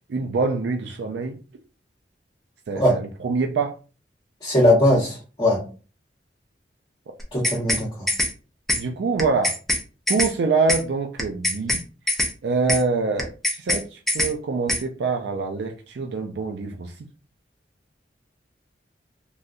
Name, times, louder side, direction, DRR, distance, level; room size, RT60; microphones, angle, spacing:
voice 1, 0.1-1.4 2.7-3.8 8.8-9.6 10.1-11.8 12.4-17.1, right 4 dB, 75° right, 4 dB, 0.4 m, -25 dB
voice 2, 4.4-5.6 7.3-8.1, left 1 dB, 30° left, -9 dB, 1.3 m, -20 dB
sound 1, 7.2-8.3 8.7-8.8 9.2-9.8 10.1-10.3 10.7-10.8 11.2-11.8 12.1-12.3 12.7-12.8 13.2-13.8 14.1-14.3 14.7-14.8, left 1 dB, ahead, 0.6 m, -23 dB
3.4 x 2.7 x 2.5 m, 0.35 s
head